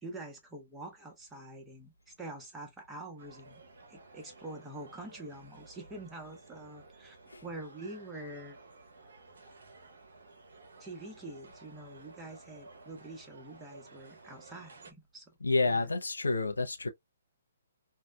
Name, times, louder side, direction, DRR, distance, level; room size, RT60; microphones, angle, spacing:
voice 1, 0.0-3.6 3.9-7.2 7.4-8.6 10.8-15.3 15.7-15.8, right 2 dB, 10° right, 0.9 m, -46 dB
sound 1, 3.2-14.9, right 3 dB, 65° right, 0.7 m, -55 dB
voice 2, 15.4-16.9, left 3 dB, 85° left, 0.5 m, -29 dB
2.7 x 2.2 x 2.2 m
figure-of-eight pair, 130°, 0 cm